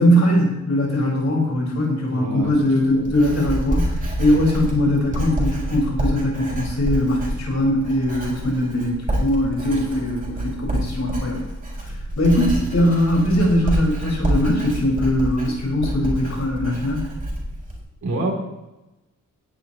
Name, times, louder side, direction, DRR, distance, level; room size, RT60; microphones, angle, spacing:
voice 1, 0.0-11.4 12.2-17.0, left 1 dB, 55° left, -2 dB, 4.7 m, -20 dB
voice 2, 2.1-3.0 9.7-9.8 18.0-18.3, right 2 dB, 60° right, 0 dB, 2.8 m, -28 dB
Writing, 2.4-17.8, right 1 dB, 25° right, 4.0 m, -27 dB
18.0 x 10.0 x 3.0 m, 0.99 s
wide cardioid pair, 180°, 33 cm